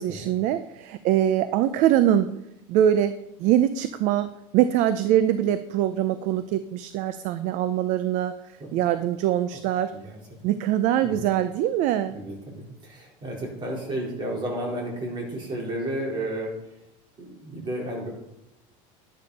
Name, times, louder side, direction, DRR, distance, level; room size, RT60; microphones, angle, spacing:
voice 1, 0.0-2.3 2.7-8.3 8.7-9.9 10.4-12.2, right 11 dB, 50° right, 12 dB, 0.6 m, -23 dB
voice 2, 12.1-16.5 17.2-18.1, right 1 dB, 30° right, -2 dB, 4.3 m, -32 dB
11.0 x 10.5 x 4.2 m, 0.87 s
supercardioid pair, 145°, 16 cm